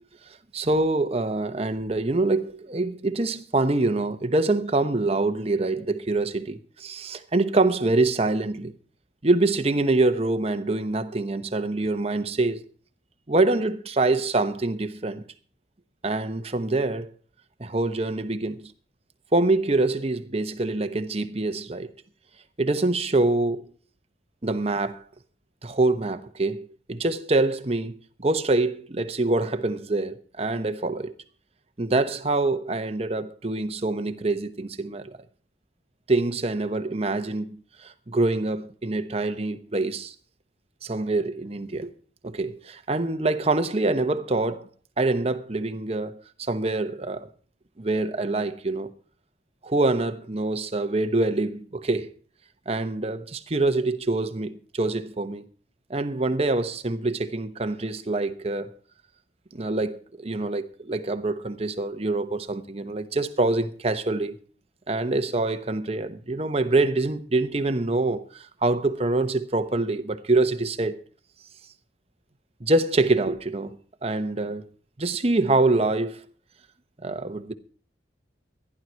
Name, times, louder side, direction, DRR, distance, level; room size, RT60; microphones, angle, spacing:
voice 1, 0.5-8.7 9.2-12.6 13.3-15.2 16.0-17.1 17.6-18.7 19.3-21.9 22.6-23.7 24.4-25.0 25.6-31.1 31.8-35.2 36.1-40.1 40.8-41.9 42.2-44.7 45.0-47.3 47.8-48.9 49.6-52.1 52.7-55.4 55.9-58.7 59.5-64.4 64.9-71.0 72.6-73.8 74.0-74.6 75.0-76.2 77.0-77.5, right 2 dB, 35° right, 0.9 m, -25 dB
14.5 x 11.0 x 4.5 m
head